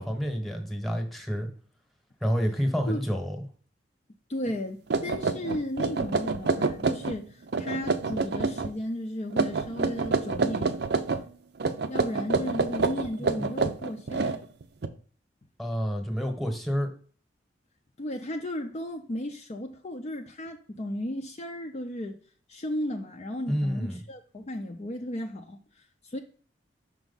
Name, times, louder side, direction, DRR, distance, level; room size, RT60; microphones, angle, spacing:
voice 1, 0.0-1.5 2.2-3.4 15.6-16.9 23.5-24.0, equal, ahead, 1.1 m, -28 dB
voice 2, 4.3-10.8 11.9-14.4 18.0-22.2 22.5-26.2, left 1 dB, 40° left, 0.5 m, -34 dB
antique typewriter, 4.5-4.6 4.9-7.2 7.5-8.7 9.3-11.2 11.6-14.9, right 4 dB, 65° right, 0.5 m, -27 dB
6.1 x 4.6 x 3.9 m
head